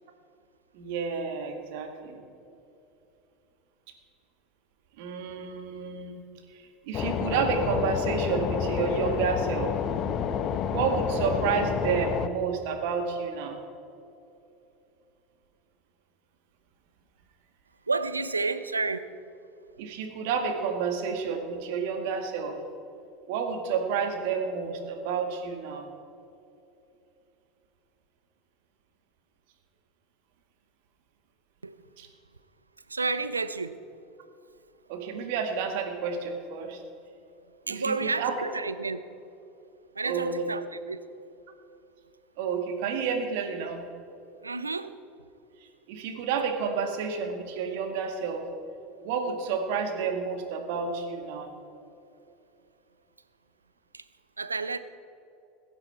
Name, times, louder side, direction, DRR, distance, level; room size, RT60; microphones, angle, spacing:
voice 1, 0.7-2.2 5.0-6.2 6.5-9.7 10.7-13.6 19.8-22.6 23.3-25.9 32.0-32.1 34.9-36.8 37.7-38.3 40.0-40.4 42.4-43.8 45.9-48.4 49.0-51.5, right 5 dB, 55° right, 1.9 m, -30 dB
sound 1, 6.9-12.3, left 7 dB, 40° left, 0.8 m, -29 dB
voice 2, 17.9-19.1 31.6-31.8 32.9-33.8 37.7-39.0 39.9-41.1 44.4-45.0 53.9-54.1 54.4-54.8, right 3 dB, 80° right, 0.5 m, -30 dB
21.5 x 8.8 x 4.4 m
figure-of-eight pair, 75°, 0 cm